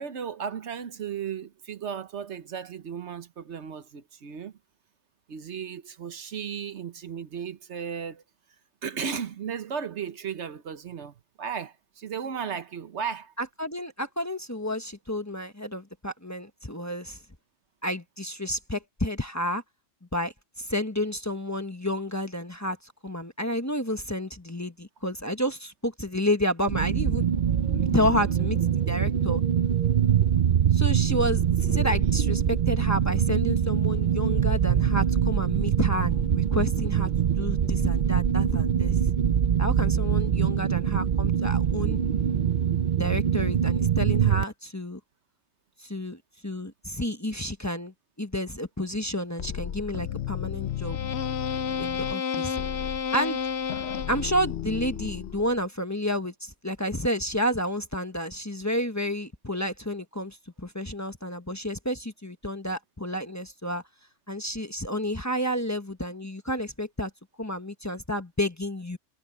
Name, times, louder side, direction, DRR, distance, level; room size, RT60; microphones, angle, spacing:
voice 1, 0.0-4.5 5.3-8.2 8.8-13.3, right 7 dB, 70° right, 1.2 m, -35 dB
voice 2, 13.4-17.2 17.8-19.6 20.1-27.2 27.7-29.4 30.7-37.1 37.4-39.0 39.6-42.0 43.0-45.0 45.8-51.0 51.8-52.6 53.1-53.4 54.1-63.8 64.3-67.1 67.4-69.0, left 1 dB, 15° left, 1.2 m, -30 dB
sound 1, 26.7-44.4, right 8 dB, 50° right, 0.6 m, -24 dB
sound 2, 49.4-55.6, left 8 dB, 65° left, 0.9 m, -31 dB
omnidirectional pair, 1.2 m